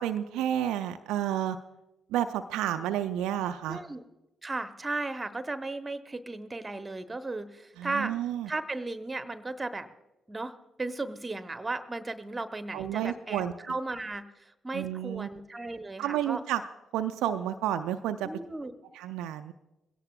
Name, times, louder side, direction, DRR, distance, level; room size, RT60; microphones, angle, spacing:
voice 1, 0.0-1.6 2.1-3.8 7.8-8.5 12.7-13.5 14.7-15.3 16.0-16.6 16.9-18.3 18.9-19.5, right 11 dB, 65° right, 8 dB, 0.4 m, -30 dB
voice 2, 3.6-4.0 4.4-8.1 8.5-9.9 10.3-16.4 18.2-18.7, right 2 dB, 20° right, 10 dB, 0.8 m, -35 dB
21.0 x 17.0 x 2.3 m, 0.99 s
figure-of-eight pair, 40°, 0 cm